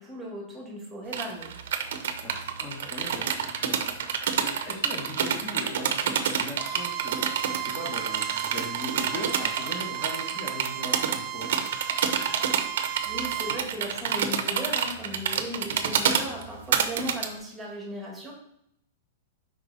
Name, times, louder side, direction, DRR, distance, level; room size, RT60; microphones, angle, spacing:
voice 1, 0.0-1.5 13.0-18.3, equal, 5° right, -3 dB, 1.5 m, -37 dB
sound 1, 1.1-17.3, right 8 dB, 65° right, 0.7 m, -28 dB
voice 2, 2.2-4.0 4.4-7.2 7.5-11.5, left 1 dB, 15° left, -5 dB, 1.1 m, -39 dB
Bowed string instrument, 6.5-13.6, right 12 dB, 25° right, 0.3 m, -35 dB
5.4 x 4.9 x 4.0 m, 0.73 s
supercardioid pair, 175°, 0 cm